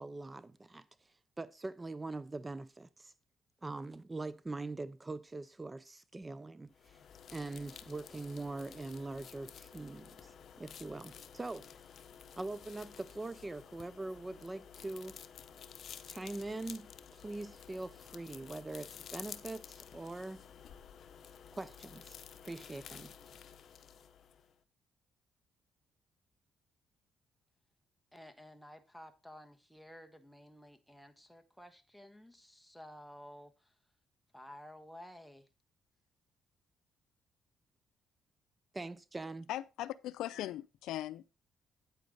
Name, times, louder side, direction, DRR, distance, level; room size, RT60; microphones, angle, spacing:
voice 1, 0.0-3.1 3.6-7.0 7.3-11.8 12.3-15.2 16.1-20.4 21.6-22.2 22.4-23.1 38.7-39.5, right 2 dB, 20° right, 0.5 m, -43 dB
sound 1, 6.7-24.6, left 8 dB, 60° left, 0.9 m, -52 dB
voice 2, 28.1-33.8 34.3-35.5, equal, ahead, 1.3 m, -53 dB
voice 3, 39.5-41.3, left 13 dB, 85° left, 0.5 m, -39 dB
9.1 x 8.5 x 3.9 m
cardioid pair, 90°, 0 cm